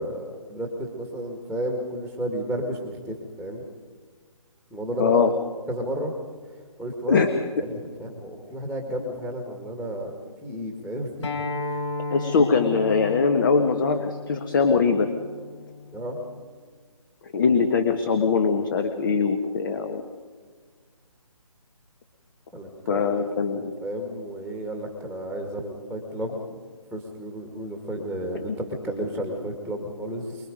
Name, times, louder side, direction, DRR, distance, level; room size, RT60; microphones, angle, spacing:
voice 1, 0.0-3.6 4.7-5.2 5.7-6.1 6.8-7.2 7.6-10.1 10.4-11.3 11.7-11.8 15.9-16.2 22.5-23.0 23.5-26.6 26.9-30.5, right 1 dB, ahead, 2 dB, 1.9 m, -32 dB
voice 2, 5.0-5.3 7.1-7.3 12.1-15.1 17.3-20.0 22.9-23.7, left 5 dB, 35° left, 7 dB, 1.5 m, -22 dB
Acoustic guitar, 11.2-16.4, left 3 dB, 50° left, 4.4 m, -34 dB
25.0 x 21.5 x 5.2 m, 1.5 s
figure-of-eight pair, 150°, 18 cm